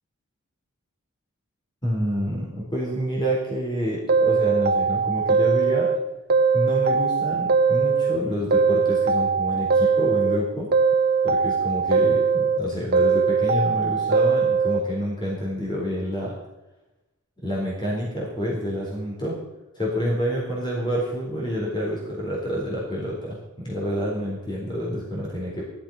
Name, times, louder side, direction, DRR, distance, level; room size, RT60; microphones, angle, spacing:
voice 1, 1.8-5.9 6.5-10.7 11.2-16.4 17.4-19.4 19.8-25.6, equal, 20° left, -4 dB, 4.0 m, -28 dB
sound 1, 4.1-6.0 6.3-8.2 8.5-10.4 10.7-12.6 12.9-14.8, right 5 dB, 45° right, 1.0 m, -20 dB
17.0 x 12.0 x 5.5 m, 1.0 s
head